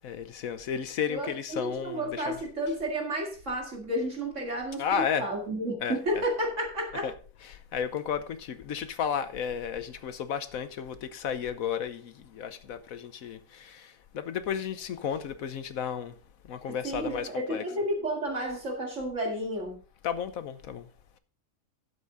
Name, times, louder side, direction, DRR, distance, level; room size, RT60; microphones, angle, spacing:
voice 1, 0.0-2.4 4.8-5.3 5.8-6.0 7.0-7.1 7.5-16.1 16.5-17.6 20.0-20.9, left 8 dB, 70° left, 1.2 m, -33 dB
voice 2, 1.1-7.1 16.7-19.8, right 1 dB, 55° right, 2.4 m, -32 dB
11.5 x 7.5 x 3.9 m
omnidirectional pair, 1.6 m